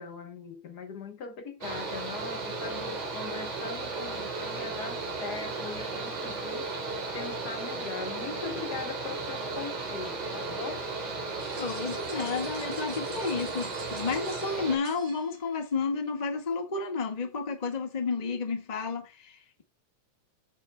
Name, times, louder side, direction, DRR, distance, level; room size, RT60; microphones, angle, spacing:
voice 1, 0.0-6.7 7.1-10.9, left 5 dB, 75° left, 0.9 m, -40 dB
Mechanical fan, 1.6-14.8, right 3 dB, 50° right, 4.0 m, -35 dB
sound 1, 11.4-15.7, right 3 dB, 75° right, 5.3 m, -49 dB
voice 2, 11.6-19.6, left 4 dB, 20° left, 1.0 m, -31 dB
15.0 x 6.7 x 2.3 m
omnidirectional pair, 3.5 m